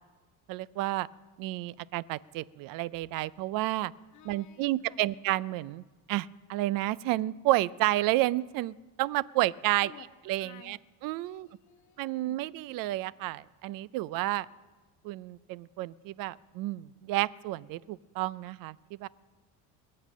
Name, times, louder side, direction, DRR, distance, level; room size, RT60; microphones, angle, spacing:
voice 1, 0.5-1.1 1.4-3.9 4.2-5.8 6.1-9.9 10.3-10.8 11.0-11.5 12.0-14.5 15.0-19.1, right 17 dB, 65° right, 21 dB, 0.5 m, -31 dB
voice 2, 4.1-5.1 9.8-10.0 10.4-10.8 11.2-12.4, left 10 dB, 50° left, 5 dB, 1.2 m, -53 dB
21.0 x 8.7 x 7.4 m, 1.3 s
cardioid pair, 140°, 36 cm